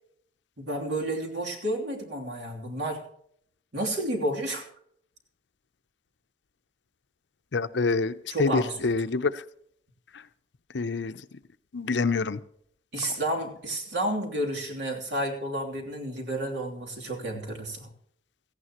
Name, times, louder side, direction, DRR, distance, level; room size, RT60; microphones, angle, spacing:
voice 1, 0.6-3.0 3.7-4.7 8.3-8.9 12.9-17.9, right 1 dB, 75° right, 0 dB, 3.1 m, -31 dB
voice 2, 7.5-9.4 10.7-11.2 11.7-12.4, left 4 dB, 75° left, 12 dB, 0.7 m, -26 dB
17.5 x 15.0 x 3.0 m, 0.67 s
head